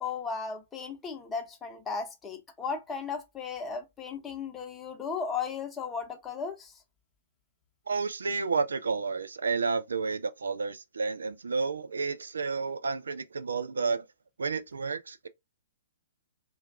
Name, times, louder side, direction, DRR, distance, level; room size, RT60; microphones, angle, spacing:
voice 1, 0.0-6.7, left 5 dB, 15° left, 0.7 m, -35 dB
voice 2, 7.9-14.1 14.4-15.3, right 4 dB, 70° right, 0.3 m, -31 dB
4.4 x 2.3 x 2.4 m
figure-of-eight pair, 120°, 0 cm